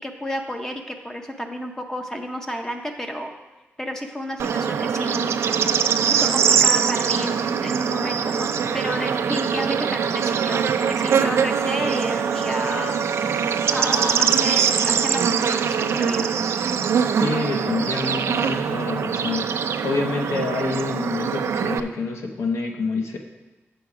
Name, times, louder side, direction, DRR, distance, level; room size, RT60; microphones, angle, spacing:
voice 1, 0.0-3.3 3.8-5.4 6.1-8.5 8.7-13.0 13.7-16.5, equal, 10° left, 3 dB, 0.6 m, -31 dB
Bird / Insect, 4.4-21.8, right 7 dB, 70° right, 0.4 m, -22 dB
voice 2, 17.2-19.5 19.8-23.2, left 4 dB, 75° left, 3 dB, 0.8 m, -27 dB
8.0 x 6.9 x 4.8 m, 1.1 s
wide cardioid pair, 165°, 5 cm